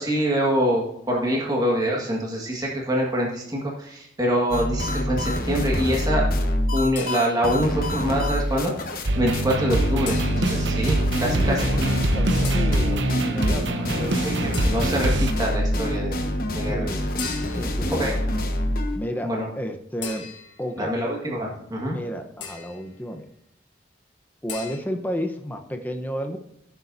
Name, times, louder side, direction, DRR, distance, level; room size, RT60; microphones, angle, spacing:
voice 1, 0.0-6.3 6.7-11.6 14.2-14.3 14.6-16.9 17.9-18.1 19.2-19.5 20.8-22.0, equal, 20° right, -2 dB, 1.7 m, -25 dB
sound 1, 4.5-9.1 9.3-9.4 9.7-19.0, left 1 dB, 50° left, 1.2 m, -26 dB
sound 2, 7.0-7.7 10.1-10.7 12.4-12.8 14.5-15.1 17.2-17.8 20.0-20.7 22.4-22.9 24.5-24.8, left 6 dB, 70° left, 1.7 m, -38 dB
sound 3, 9.1-15.3, right 1 dB, 75° right, 0.9 m, -24 dB
voice 2, 11.2-14.3 16.6-17.0 17.6-18.2 18.9-20.3 20.6-20.9 21.9-23.3 24.4-26.4, equal, 10° left, 5 dB, 0.9 m, -32 dB
15.5 x 6.9 x 2.7 m, 0.77 s
head